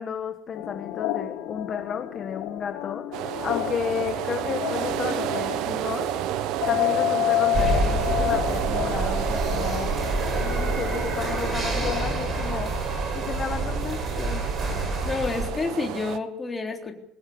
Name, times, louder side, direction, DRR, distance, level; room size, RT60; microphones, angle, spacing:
voice 1, 0.0-6.1 6.7-9.9 10.4-12.7 13.1-14.4, left 7 dB, 30° left, 6 dB, 1.5 m, -33 dB
sound 1, 0.5-12.3, left 14 dB, 80° left, 2.4 m, -30 dB
sound 2, 3.1-16.2, right 12 dB, 65° right, 1.3 m, -31 dB
sound 3, 7.5-15.5, right 2 dB, 25° right, 6.5 m, -28 dB
voice 2, 15.1-17.0, left 3 dB, 15° left, 2 dB, 3.6 m, -29 dB
22.5 x 19.0 x 8.0 m, 0.72 s
cardioid pair, 165°, 0 cm